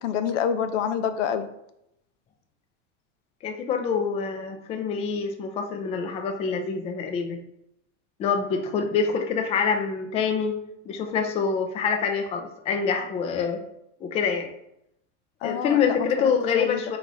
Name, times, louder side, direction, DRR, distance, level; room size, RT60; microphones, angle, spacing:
voice 1, 0.0-1.5 15.4-16.8, left 8 dB, 90° left, 9 dB, 0.6 m, -27 dB
voice 2, 3.4-7.4 8.2-10.6 10.9-13.6 14.0-14.5 15.4-17.0, left 6 dB, 20° left, 4 dB, 0.3 m, -26 dB
3.9 x 2.9 x 4.7 m, 0.79 s
supercardioid pair, 150°, 36 cm